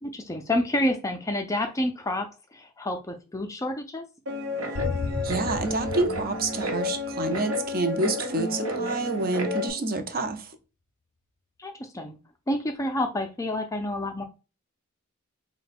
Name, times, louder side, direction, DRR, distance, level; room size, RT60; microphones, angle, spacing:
voice 1, 0.0-4.0 11.6-12.2 12.5-14.2, left 1 dB, 15° left, 0.4 m, -29 dB
Guitar, 4.3-9.7, left 2 dB, 85° right, 0.9 m, -31 dB
sound 1, 4.7-7.5, left 3 dB, 60° left, 0.6 m, -34 dB
voice 2, 5.2-10.5, right 2 dB, 40° right, 0.5 m, -28 dB
3.9 x 2.2 x 4.1 m
head